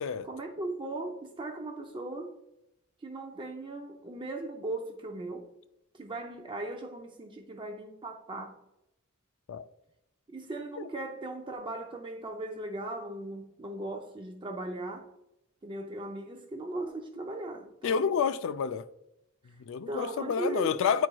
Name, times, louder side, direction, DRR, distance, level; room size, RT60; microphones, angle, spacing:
voice 1, 0.2-2.3 3.0-5.5 5.9-8.6 10.3-15.1 15.6-18.1 19.4-19.5 19.9-20.8, right 2 dB, 25° right, 0.4 m, -38 dB
voice 2, 17.8-18.9 19.6-21.1, left 7 dB, 65° left, 0.3 m, -29 dB
9.6 x 4.5 x 2.2 m
head